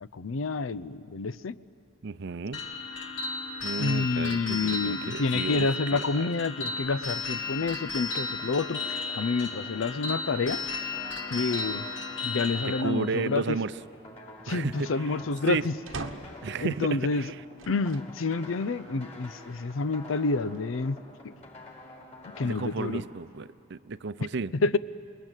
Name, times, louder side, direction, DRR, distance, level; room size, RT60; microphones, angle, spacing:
voice 1, 0.0-1.6 3.8-10.6 11.3-11.9 12.2-13.6 14.5-15.7 16.6-17.3 17.7-21.0 21.2-21.3 22.4-23.0 24.6-24.8, left 3 dB, 85° left, 15 dB, 0.6 m, -28 dB
voice 2, 2.0-2.6 3.6-6.3 12.6-13.7 14.5-15.2 15.5-15.7 16.4-17.3 22.4-24.8, right 4 dB, 60° right, 15 dB, 0.6 m, -33 dB
sound 1, 2.5-12.8, left 4 dB, 65° left, 1.7 m, -34 dB
sound 2, 8.2-22.9, left 1 dB, 35° left, 5.0 m, -48 dB
sound 3, 15.9-16.5 17.6-18.1 18.8-18.9 20.1-20.9, right 3 dB, 90° right, 1.2 m, -41 dB
28.5 x 21.5 x 9.1 m, 2.6 s
head